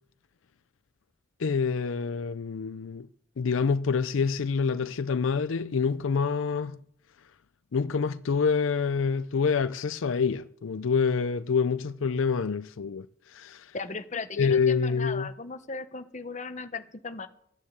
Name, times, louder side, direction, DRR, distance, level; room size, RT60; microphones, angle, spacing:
voice 1, 1.4-3.1 3.4-6.8 7.7-13.7 14.4-15.3, left 5 dB, 75° left, 0.5 m, -27 dB
voice 2, 13.7-17.3, left 4 dB, 35° left, 0.9 m, -37 dB
14.5 x 10.0 x 8.1 m
head